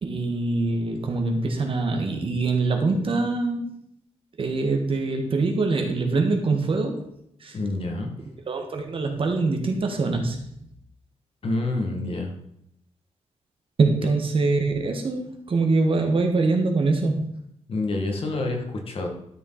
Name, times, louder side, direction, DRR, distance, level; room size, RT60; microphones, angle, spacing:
voice 1, 0.0-3.7 4.4-7.0 7.4-7.6 8.5-10.4 13.8-17.3, right 3 dB, 55° right, 4 dB, 1.7 m, -24 dB
voice 2, 7.5-8.1 11.4-12.3 17.7-19.1, left 2 dB, 55° left, 2 dB, 2.1 m, -27 dB
12.0 x 6.6 x 4.2 m, 0.73 s
wide cardioid pair, 150°, 11 cm